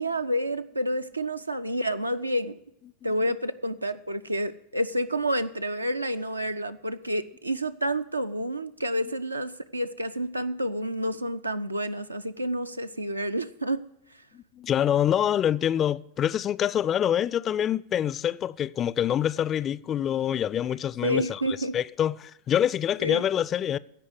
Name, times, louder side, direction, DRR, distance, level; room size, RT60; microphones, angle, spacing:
voice 1, 0.0-2.6 3.0-13.8 21.0-21.8 23.0-23.2, equal, 85° right, 0.5 m, -29 dB
voice 2, 14.3-21.4 21.7-23.8, left 10 dB, 30° left, 0.3 m, -26 dB
15.5 x 5.3 x 7.9 m
figure-of-eight pair, 90°, 0 cm